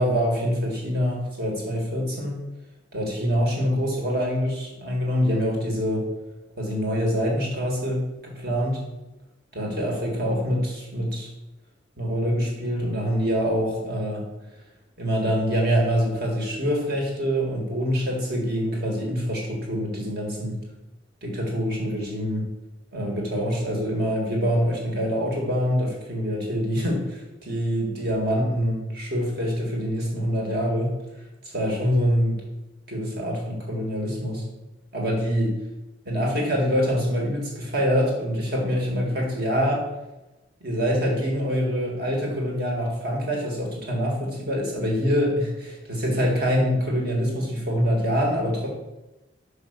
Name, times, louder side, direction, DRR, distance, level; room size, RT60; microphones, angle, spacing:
voice 1, 0.0-2.4 2.9-6.0 6.6-8.8 9.5-11.3 12.0-14.2 15.0-20.6 21.2-22.4 22.9-30.9 31.5-32.4 32.9-34.4 34.9-35.5 36.1-39.9 40.6-48.7, equal, 50° right, -1 dB, 1.9 m, -25 dB
5.5 x 5.4 x 5.2 m, 1.0 s
head